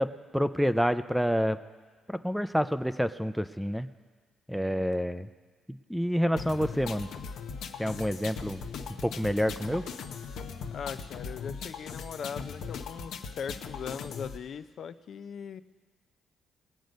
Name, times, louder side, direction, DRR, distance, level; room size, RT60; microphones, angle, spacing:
voice 1, 0.0-1.6 2.1-3.9 4.5-5.3 5.7-7.1 7.8-8.6 9.0-9.8, equal, ahead, 11 dB, 0.4 m, -28 dB
sound 1, 6.4-14.4, left 5 dB, 80° left, 0.8 m, -39 dB
voice 2, 10.7-15.6, left 7 dB, 60° left, 12 dB, 0.5 m, -39 dB
20.5 x 7.8 x 5.2 m, 1.5 s
cardioid pair, 90°, 0 cm